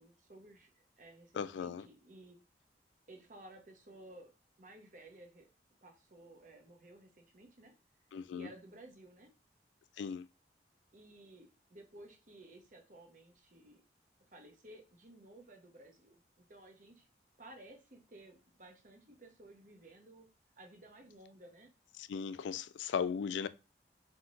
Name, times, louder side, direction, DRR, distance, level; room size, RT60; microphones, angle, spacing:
voice 1, 0.0-2.4 3.1-4.3 4.6-5.5 5.8-7.7 8.3-9.3 10.9-13.8 14.3-17.1 17.4-20.3 20.6-21.7, right 1 dB, 45° right, 0.9 m, -56 dB
voice 2, 1.3-1.9 8.1-8.5 10.0-10.3 22.0-23.5, left 6 dB, 85° left, 0.3 m, -37 dB
4.4 x 3.6 x 2.5 m
head